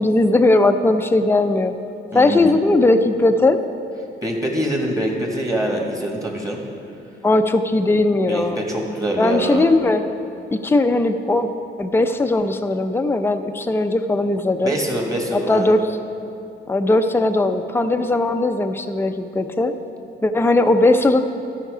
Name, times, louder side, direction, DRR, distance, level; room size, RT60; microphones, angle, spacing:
voice 1, 0.0-1.7 2.1-3.6 7.2-8.6 9.2-10.0 10.5-11.5 11.8-14.8 15.3-15.9 16.7-19.8 20.2-21.2, left 2 dB, 10° left, 7 dB, 0.5 m, -18 dB
voice 2, 2.1-2.5 4.2-6.6 8.3-9.6 14.6-15.7, right 1 dB, 15° right, 0 dB, 1.7 m, -24 dB
13.0 x 5.9 x 4.9 m, 2.7 s
cardioid pair, 90°, 20 cm